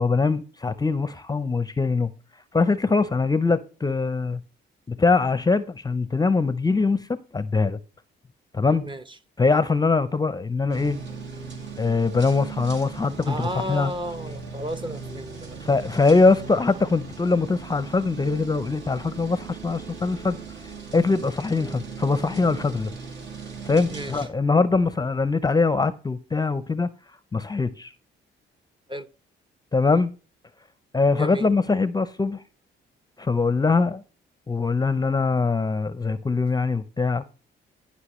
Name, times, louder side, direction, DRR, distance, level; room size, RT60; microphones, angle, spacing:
voice 1, 0.0-2.1 2.5-4.4 4.9-7.8 8.5-8.8 9.4-11.0 11.8-13.9 15.6-20.4 20.9-22.9 23.6-26.9 27.3-27.9 29.7-30.1 30.9-32.4 33.2-34.0 34.5-37.2, left 4 dB, 20° left, 0.6 m, -22 dB
sound 1, 10.7-24.3, right 5 dB, 65° right, 2.2 m, -39 dB
voice 2, 13.3-15.6 23.9-24.2 28.9-29.1 31.2-31.5, right 1 dB, 25° right, 0.8 m, -33 dB
16.5 x 5.5 x 3.1 m
cardioid pair, 90°, 20 cm